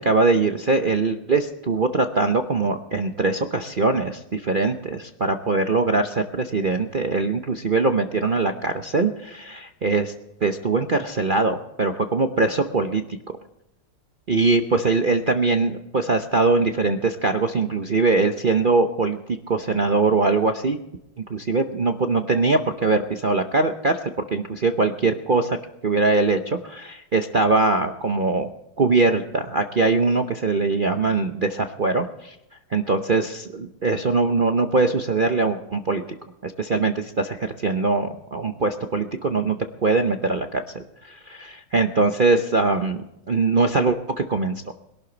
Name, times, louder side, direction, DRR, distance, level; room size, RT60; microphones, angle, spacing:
voice 1, 0.0-10.1 10.4-13.0 14.3-20.8 21.3-24.0 24.3-25.6 25.8-28.5 28.8-32.4 32.7-36.0 36.4-39.6 39.8-44.7, right 3 dB, 55° right, 6 dB, 0.5 m, -22 dB
21.5 x 12.0 x 4.0 m, 0.86 s
omnidirectional pair, 2.1 m